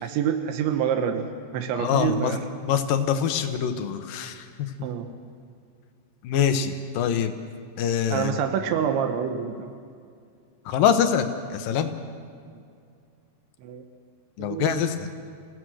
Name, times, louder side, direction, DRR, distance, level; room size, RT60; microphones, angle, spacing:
voice 1, 0.0-1.3 1.5-2.4 4.8-5.1 8.1-9.8 12.5-12.6 13.6-13.8 14.4-14.9, right 8 dB, 85° right, 7 dB, 3.4 m, -27 dB
voice 2, 1.8-2.4 2.6-4.7 6.2-7.4 7.8-8.4 10.7-11.9 14.4-15.1, left 8 dB, 70° left, 8 dB, 2.3 m, -24 dB
29.0 x 17.0 x 6.4 m, 2.3 s
omnidirectional pair, 5.1 m